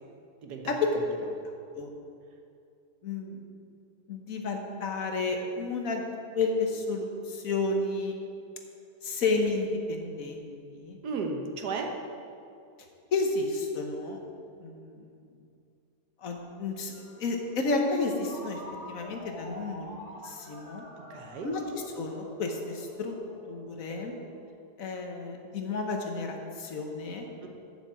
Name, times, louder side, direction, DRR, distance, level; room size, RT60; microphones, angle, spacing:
voice 1, 0.7-1.0 1.7-1.9 3.0-3.4 4.1-6.0 6.3-8.1 9.0-11.0 13.1-14.2 14.6-15.2 16.2-18.6 18.9-19.9 20.2-20.8 21.4-23.2 23.5-24.1 24.8-27.3, left 3 dB, 60° left, 3 dB, 1.4 m, -31 dB
voice 2, 11.0-11.9 21.0-21.5 27.4-27.5, right 4 dB, 75° right, 3 dB, 1.6 m, -34 dB
Ringtone, 16.9-24.4, left 1 dB, 60° right, 2.5 m, -47 dB
7.3 x 6.7 x 8.1 m, 2.5 s
omnidirectional pair, 1.7 m